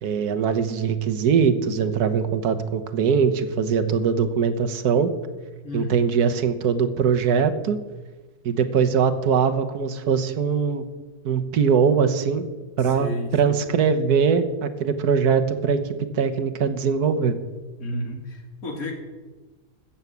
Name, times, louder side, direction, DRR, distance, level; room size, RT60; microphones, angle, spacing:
voice 1, 0.0-5.1 5.7-7.8 8.4-10.9 11.2-12.4 12.8-15.8 16.1-17.3, right 6 dB, 80° right, 8 dB, 1.6 m, -21 dB
voice 2, 5.6-6.1 12.8-13.6 17.8-18.9, equal, 65° left, 2 dB, 2.6 m, -32 dB
14.5 x 7.3 x 8.1 m, 1.3 s
omnidirectional pair, 1.6 m